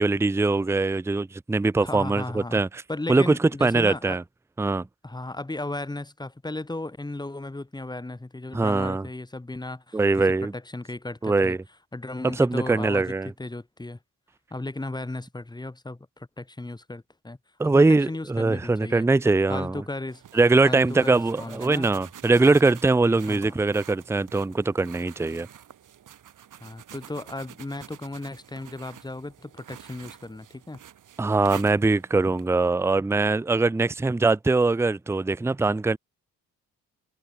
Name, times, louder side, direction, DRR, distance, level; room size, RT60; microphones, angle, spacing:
voice 1, 0.0-2.8 3.1-3.3 3.6-4.2 4.6-4.9 8.5-9.1 9.9-10.5 11.2-11.6 12.2-13.3 17.6-19.8 20.3-25.5 31.2-36.0, right 3 dB, 10° right, 0.6 m, -22 dB
voice 2, 1.8-2.6 2.9-4.2 5.0-10.0 10.4-11.6 11.9-14.0 14.5-17.4 17.6-19.1 19.5-20.2 20.6-21.9 23.3-23.6 26.6-30.8, left 2 dB, 10° left, 3.1 m, -35 dB
sound 1, 20.1-32.5, right 10 dB, 65° right, 7.9 m, -47 dB
cardioid pair, 115°, 34 cm